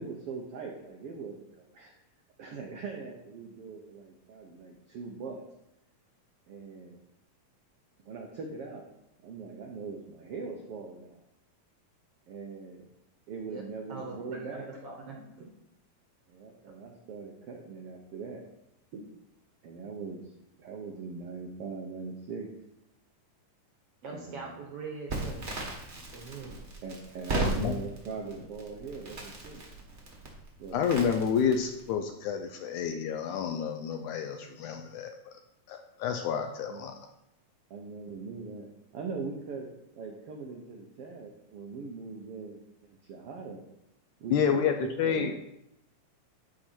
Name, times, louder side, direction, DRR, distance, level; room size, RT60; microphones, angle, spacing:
voice 1, 0.0-1.9 2.4-5.4 6.5-7.0 8.0-8.8 9.2-11.2 12.3-12.8 13.3-14.7 16.3-18.4 19.6-20.3 20.6-22.5 24.1-24.5 26.4-29.6 30.6-30.9 36.7-36.9 37.7-38.7 38.9-39.7 39.9-42.6 42.9-43.6 44.2-45.3, right 4 dB, 90° right, 1 dB, 1.3 m, -41 dB
voice 2, 13.9-15.5 18.9-19.0 24.0-25.5 26.1-26.5 28.2-28.3, right 4 dB, 60° right, 0 dB, 1.7 m, -42 dB
Crackle, 25.1-31.9, right 2 dB, 35° right, 1.0 m, -37 dB
voice 3, 27.3-27.7 30.7-35.1 35.7-36.9 44.3-45.3, left 7 dB, 80° left, 5 dB, 1.9 m, -29 dB
11.5 x 4.9 x 4.4 m, 0.81 s
omnidirectional pair, 3.9 m